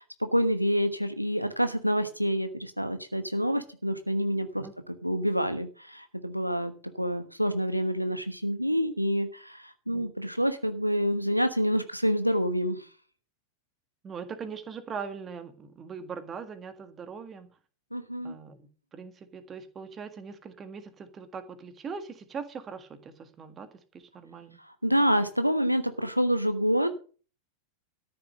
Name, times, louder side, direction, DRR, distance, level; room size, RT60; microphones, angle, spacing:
voice 1, 0.0-12.8 17.9-18.4 24.8-27.0, equal, 90° right, 10 dB, 1.2 m, -27 dB
voice 2, 14.0-17.5 18.2-23.7 24.1-24.6, right 6 dB, 25° right, 10 dB, 1.8 m, -41 dB
13.5 x 6.9 x 6.5 m, 0.39 s
figure-of-eight pair, 90°, 0 cm